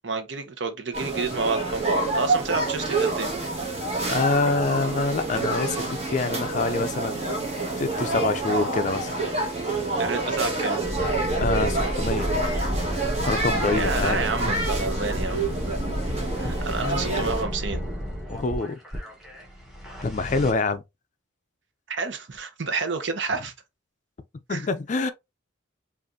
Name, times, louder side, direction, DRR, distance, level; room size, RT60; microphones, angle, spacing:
voice 1, 0.0-3.3 10.0-10.8 13.7-15.5 16.4-17.9 21.9-23.5 24.5-24.7, right 4 dB, 65° right, 0.8 m, -29 dB
sound 1, 0.9-17.4, right 2 dB, 35° right, 1.4 m, -28 dB
voice 2, 3.8-7.4 7.8-9.1 11.4-12.3 13.3-14.5 16.6-17.1 18.3-18.8 20.0-20.8 24.5-25.1, left 3 dB, 40° left, 0.4 m, -26 dB
sound 2, 10.8-20.5, equal, ahead, 1.1 m, -30 dB
5.1 x 2.5 x 2.6 m
head